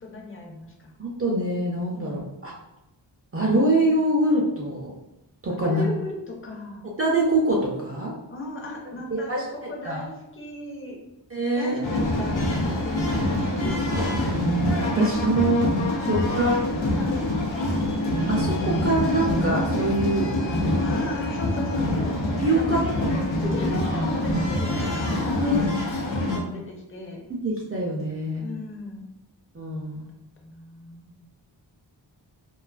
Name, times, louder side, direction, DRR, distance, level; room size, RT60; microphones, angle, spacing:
voice 1, 0.0-0.9 1.9-2.2 5.5-6.9 8.3-11.0 11.6-13.8 16.0-16.6 20.8-22.2 22.5-25.5 26.1-27.3 28.4-29.1 30.4-31.2, left 2 dB, 30° left, -1 dB, 0.5 m, -36 dB
voice 2, 1.0-2.5 3.3-4.9 5.4-5.8 7.0-8.1 9.1-9.4 9.8-10.1 11.3-11.8 14.4-16.5 18.3-20.3 22.4-22.8 25.4-25.6 26.2-26.4 27.4-28.4 29.5-30.1, right 1 dB, 35° right, -3 dB, 0.4 m, -24 dB
sound 1, 11.8-26.4, left 1 dB, 80° left, 0.6 m, -25 dB
2.4 x 2.2 x 2.4 m, 0.90 s
wide cardioid pair, 80°, 45 cm